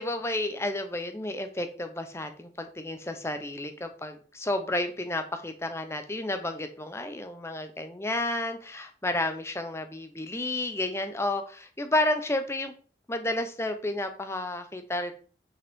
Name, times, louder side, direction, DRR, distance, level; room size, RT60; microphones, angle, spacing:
voice 1, 0.0-12.7 13.1-15.1, left 1 dB, 15° left, 7 dB, 0.7 m, -31 dB
6.0 x 5.5 x 3.6 m, 0.41 s
head